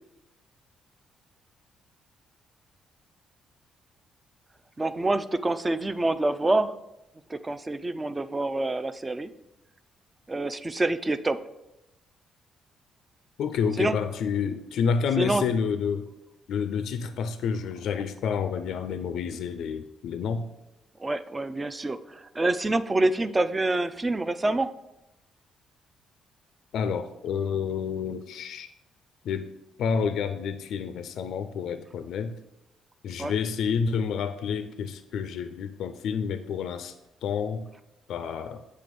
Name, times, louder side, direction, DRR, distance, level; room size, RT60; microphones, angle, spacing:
voice 1, 4.8-6.7 7.3-9.3 10.3-11.4 13.8-14.0 15.2-15.4 21.0-24.7 33.2-33.3, right 2 dB, 20° right, 11 dB, 0.4 m, -26 dB
voice 2, 13.4-16.1 16.5-20.5 26.7-28.7 29.2-29.5 29.8-32.4 33.0-36.9 37.2-37.7 38.1-38.6, left 6 dB, 75° left, 10 dB, 0.4 m, -29 dB
7.6 x 3.3 x 5.1 m, 0.92 s
cardioid pair, 90°, 0 cm